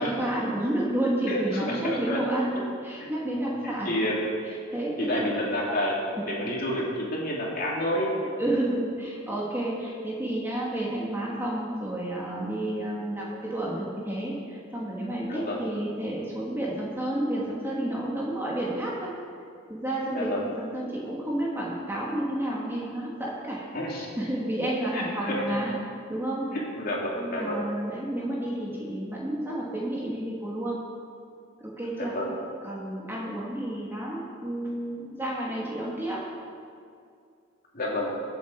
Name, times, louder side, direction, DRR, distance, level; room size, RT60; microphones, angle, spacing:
voice 1, 0.0-2.5 2.8-4.0 4.7-5.3 6.2-6.3 8.4-19.1 19.7-23.7 24.2-25.7 26.1-26.4 27.2-30.8 31.6-32.1 32.6-36.2, right 1 dB, 10° right, -5 dB, 2.2 m, -30 dB
voice 2, 1.3-2.2 2.5-2.6 3.6-4.2 5.0-8.2 15.3-15.6 20.1-20.5 23.7-24.1 24.9-25.6 26.5-27.6 32.0-32.4 37.7-38.1, left 1 dB, 45° left, -4 dB, 2.8 m, -29 dB
23.0 x 8.3 x 4.7 m, 2.4 s
head